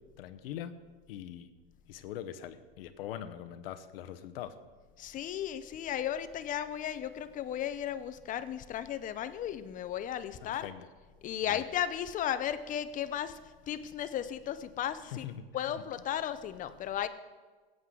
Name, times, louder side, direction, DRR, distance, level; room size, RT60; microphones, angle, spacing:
voice 1, 0.2-0.7 1.1-1.5 1.9-4.5 10.4-10.8 11.5-11.6 15.1-15.4, left 11 dB, 70° left, 10 dB, 0.9 m, -42 dB
voice 2, 5.0-10.7 11.2-15.2 15.5-17.1, left 10 dB, 25° left, 12 dB, 0.6 m, -35 dB
17.5 x 7.9 x 3.8 m, 1.4 s
hypercardioid pair, 120°, 30 cm